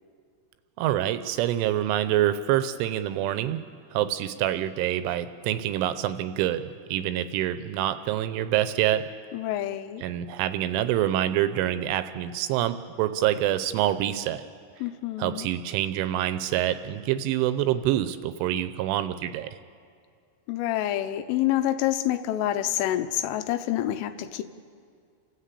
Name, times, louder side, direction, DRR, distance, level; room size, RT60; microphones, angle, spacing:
voice 1, 0.8-3.6 3.9-6.6 6.9-9.0 10.0-14.4 15.2-19.6, right 12 dB, 80° right, 11 dB, 3.0 m, -26 dB
voice 2, 9.3-10.0 14.8-15.5 20.5-24.4, left 13 dB, 85° left, 9 dB, 3.3 m, -27 dB
29.5 x 13.5 x 8.3 m, 2.2 s
omnidirectional pair, 5.8 m